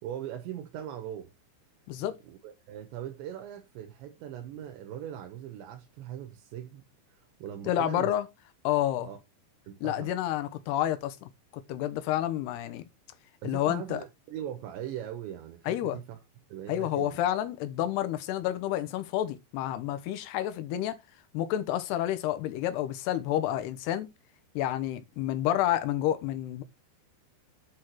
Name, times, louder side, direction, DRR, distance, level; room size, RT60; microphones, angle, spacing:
voice 1, 0.0-1.3 2.0-6.8 7.1-8.1 9.0-9.2 9.7-10.1 13.4-16.2 16.5-17.2, right 10 dB, 85° right, 3.3 m, -40 dB
voice 2, 7.7-8.3 8.6-9.1 9.8-12.8 13.4-14.0 15.7-16.0 16.7-21.0 21.3-24.1 24.6-26.6, left 12 dB, 80° left, 2.7 m, -29 dB
8.5 x 4.9 x 4.5 m
omnidirectional pair, 5.1 m